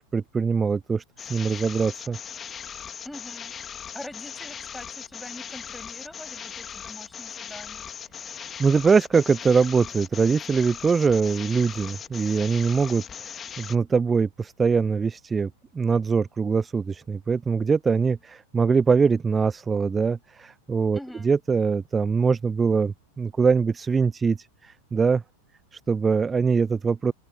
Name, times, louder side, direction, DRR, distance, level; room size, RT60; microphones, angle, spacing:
voice 1, 0.0-2.2 8.6-21.0 21.2-25.2 25.7-27.1, right 5 dB, 15° right, 0.5 m, -23 dB
sound 1, 1.2-13.8, left 8 dB, 20° left, 2.5 m, -39 dB
voice 2, 3.0-3.5 3.9-7.8 20.9-21.3, left 1 dB, 5° left, 8.0 m, -43 dB
open air
figure-of-eight pair, 90°, 0 cm